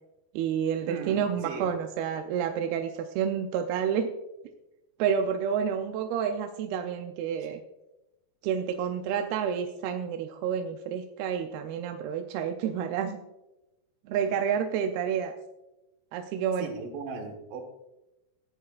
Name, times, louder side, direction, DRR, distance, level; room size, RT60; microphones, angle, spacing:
voice 1, 0.3-4.1 5.0-7.6 8.4-13.2 14.1-15.3 16.1-16.7, right 8 dB, 80° right, 5 dB, 2.6 m, -29 dB
voice 2, 0.9-1.7 16.6-17.6, right 4 dB, 65° right, 3 dB, 2.9 m, -37 dB
16.0 x 11.0 x 2.4 m, 0.96 s
omnidirectional pair, 4.6 m